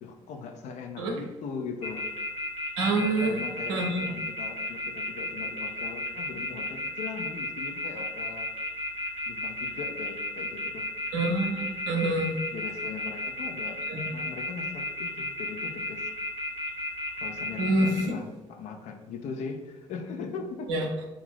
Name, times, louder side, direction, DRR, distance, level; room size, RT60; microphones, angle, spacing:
voice 1, 0.0-2.1 2.9-8.5 9.3-10.9 11.9-12.2 12.5-13.8 14.1-16.1 17.2-20.7, left 5 dB, 50° left, 5 dB, 0.4 m, -40 dB
sound 1, 1.8-18.0, left 2 dB, 65° left, 1.2 m, -33 dB
voice 2, 2.8-3.4 3.7-4.0 11.1-12.3 13.9-14.1 17.6-18.1 20.7-21.0, right 2 dB, 70° right, 1 dB, 0.6 m, -27 dB
2.4 x 2.4 x 3.4 m, 1.1 s
figure-of-eight pair, 50°, 15 cm